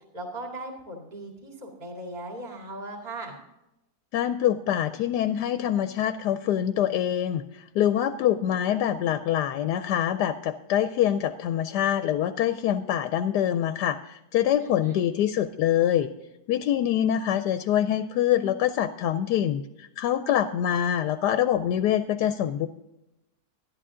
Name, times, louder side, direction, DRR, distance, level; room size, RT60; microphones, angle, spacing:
voice 1, 0.1-3.4 14.6-15.0, right 2 dB, 25° right, 1 dB, 2.2 m, -38 dB
voice 2, 4.1-16.1 16.5-22.7, left 10 dB, 80° left, 10 dB, 1.1 m, -25 dB
12.0 x 11.0 x 3.7 m, 0.90 s
omnidirectional pair, 1.8 m